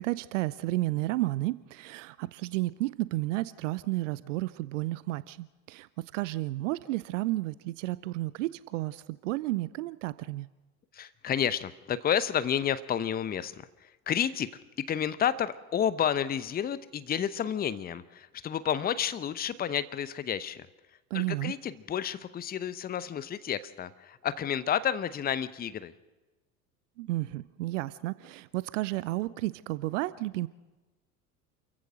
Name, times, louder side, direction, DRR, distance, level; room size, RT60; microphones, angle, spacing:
voice 1, 0.0-10.5 21.1-21.5 27.0-30.5, right 18 dB, 55° right, 19 dB, 0.7 m, -32 dB
voice 2, 10.9-14.5 14.8-20.7 21.1-25.9, left 9 dB, 20° left, 16 dB, 0.8 m, -30 dB
28.5 x 15.0 x 6.3 m, 1.2 s
figure-of-eight pair, 70°, 45 cm